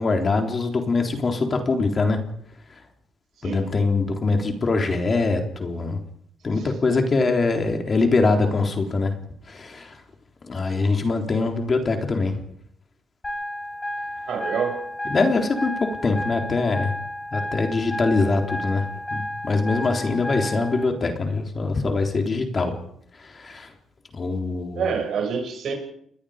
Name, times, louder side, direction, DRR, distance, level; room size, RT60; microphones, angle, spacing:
voice 1, 0.0-2.2 3.4-6.0 6.4-9.1 9.5-10.0 10.5-12.3 15.1-15.7 16.0-16.9 17.3-22.7 23.2-23.7 24.1-24.9, left 3 dB, 35° left, 4 dB, 3.7 m, -23 dB
sound 1, 13.2-20.8, left 1 dB, 20° left, 4.5 m, -32 dB
voice 2, 14.3-14.9 24.8-25.7, right 6 dB, 65° right, 4 dB, 6.9 m, -27 dB
29.0 x 20.5 x 5.1 m, 0.70 s
cardioid pair, 90°, 0 cm